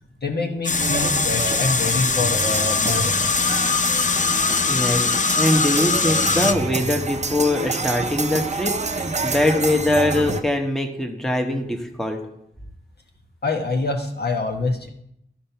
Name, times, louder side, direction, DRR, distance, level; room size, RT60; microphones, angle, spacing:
voice 1, 0.2-3.5 13.4-14.9, left 3 dB, 60° left, 1 dB, 1.3 m, -26 dB
sound 1, 0.6-6.5, left 4 dB, 40° left, 0.5 m, -21 dB
sound 2, 0.7-10.4, right 3 dB, 40° right, 0.6 m, -28 dB
voice 2, 4.7-12.2, left 1 dB, ahead, 3 dB, 1.0 m, -22 dB
13.0 x 4.4 x 5.7 m, 0.78 s
wide cardioid pair, 100°, 19 cm